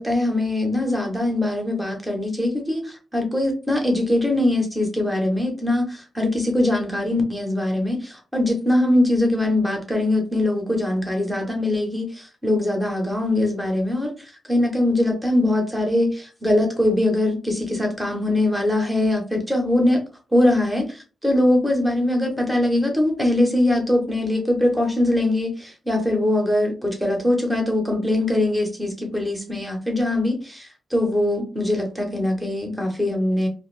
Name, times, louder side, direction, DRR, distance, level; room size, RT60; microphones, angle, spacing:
voice 1, 0.0-14.1 14.5-20.0 20.3-33.5, left 1 dB, 5° right, 2 dB, 0.8 m, -22 dB
2.5 x 2.4 x 3.1 m, 0.35 s
wide cardioid pair, 140°, 0 cm